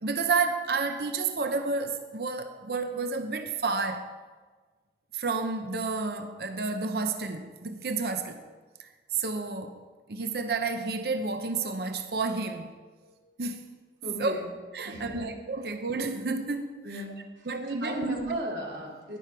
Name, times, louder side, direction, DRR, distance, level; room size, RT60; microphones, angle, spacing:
voice 1, 0.0-4.1 5.1-8.4 8.8-9.8 10.1-12.7 13.4-13.7 14.2-14.3 14.7-16.8 17.5-18.2, right 4 dB, 60° right, 7 dB, 0.7 m, -30 dB
voice 2, 14.0-14.5 14.8-15.3 16.8-19.2, right 1 dB, 85° right, -3 dB, 3.2 m, -36 dB
11.5 x 10.5 x 4.7 m, 1.4 s
head